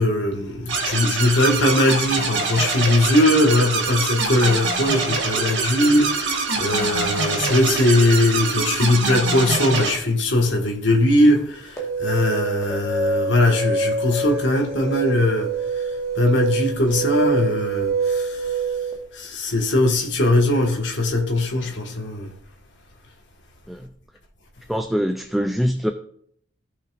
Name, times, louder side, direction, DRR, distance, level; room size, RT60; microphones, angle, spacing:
voice 1, 0.0-18.6 19.1-22.3, left 1 dB, 70° left, 1.8 m, -20 dB
sound 1, 0.7-9.9, right 4 dB, 65° right, 2.0 m, -24 dB
sound 2, 11.8-18.9, right 3 dB, 15° left, 1.6 m, -25 dB
voice 2, 24.7-25.9, equal, ahead, 0.4 m, -23 dB
16.0 x 5.8 x 2.6 m
head